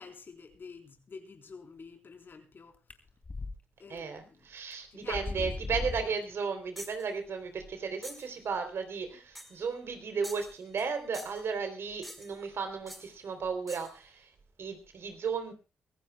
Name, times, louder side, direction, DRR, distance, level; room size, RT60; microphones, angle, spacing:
voice 1, 0.0-2.8 3.8-4.5 4.9-5.7, left 4 dB, 50° left, 4.0 m, -48 dB
sound 1, 2.9-3.5 4.0-4.1 4.7-4.8 5.1-6.2, left 3 dB, 30° left, 2.6 m, -36 dB
voice 2, 3.9-14.3 14.6-15.5, right 5 dB, 65° right, 3.5 m, -35 dB
sound 2, 6.8-7.1 8.0-8.3 9.4-9.6 10.2-10.9 11.1-11.5 12.0-12.4 12.9-13.1 13.7-14.0, equal, ahead, 4.9 m, -46 dB
24.0 x 15.5 x 2.3 m
supercardioid pair, 55°, 5 cm